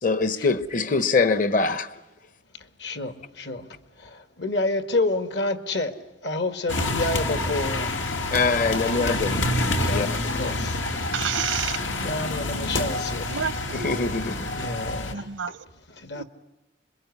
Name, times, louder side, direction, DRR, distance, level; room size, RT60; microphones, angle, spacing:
voice 1, 0.0-1.9 8.3-9.4 9.8-10.1 13.7-14.5, left 4 dB, 45° left, 1.0 m, -23 dB
voice 2, 2.5-5.9 6.2-8.0 9.6-10.8 12.0-13.4 14.5-15.5 15.9-16.2, left 2 dB, 65° left, 1.7 m, -29 dB
sound 1, 6.7-15.1, left 2 dB, 85° left, 2.4 m, -27 dB
voice 3, 11.1-11.8 13.3-13.9 15.1-15.6 16.1-16.2, right 8 dB, 85° right, 0.9 m, -29 dB
26.5 x 22.0 x 9.7 m
head